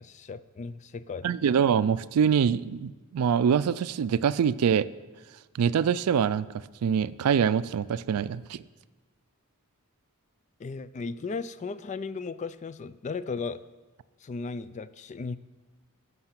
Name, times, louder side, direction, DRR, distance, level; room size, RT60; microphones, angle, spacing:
voice 1, 0.0-1.6 10.6-13.6 14.2-15.4, left 4 dB, 30° left, 15 dB, 0.3 m, -36 dB
voice 2, 1.2-4.9 5.5-8.6, right 7 dB, 80° right, 17 dB, 0.4 m, -25 dB
13.5 x 5.5 x 5.9 m, 1.2 s
head